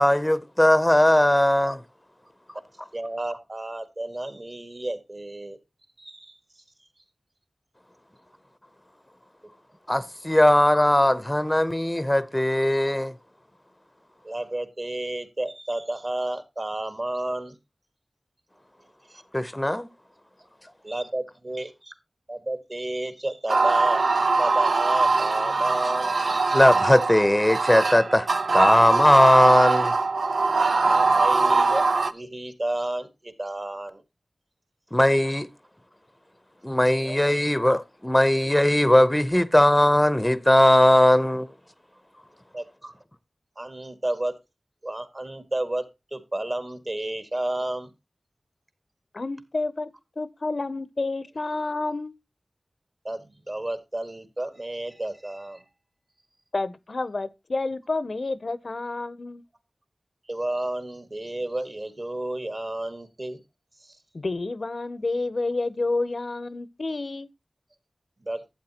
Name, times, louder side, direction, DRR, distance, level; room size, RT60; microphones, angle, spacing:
voice 1, 0.0-1.8 9.9-13.1 19.3-19.9 26.5-28.3 28.5-29.9 34.9-35.5 36.6-41.5, left 1 dB, 15° left, 0.7 m, -19 dB
voice 2, 2.9-5.6 6.0-6.6 14.2-17.6 19.1-19.2 20.8-21.9 22.3-26.1 30.8-34.0 37.0-37.2 42.5-43.0 43.6-44.4 44.8-47.9 53.0-55.6 60.2-63.4 63.8-64.0 68.2-68.4, right 1 dB, 40° right, 1.8 m, -32 dB
sound 1, 23.5-32.1, right 3 dB, 85° right, 0.6 m, -22 dB
voice 3, 49.1-52.1 56.5-59.4 64.1-67.3, left 3 dB, 60° left, 0.7 m, -29 dB
11.5 x 8.4 x 2.9 m
wide cardioid pair, 65°, 0 cm